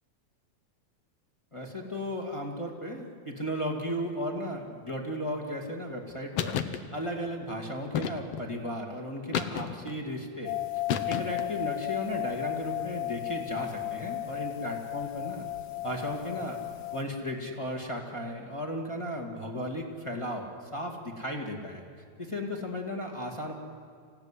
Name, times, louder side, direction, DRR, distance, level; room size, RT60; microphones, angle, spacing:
voice 1, 1.5-6.6 6.9-15.5 15.8-16.6 16.9-21.8 22.2-23.5, equal, 10° left, -1 dB, 1.9 m, -35 dB
sound 1, 6.4-6.8 7.9-8.5 9.3-10.0 10.9-11.5, left 8 dB, 65° left, 1.8 m, -31 dB
sound 2, 10.4-17.0, left 16 dB, 85° left, 2.6 m, -35 dB
26.5 x 16.5 x 9.9 m, 2.2 s
omnidirectional pair, 3.4 m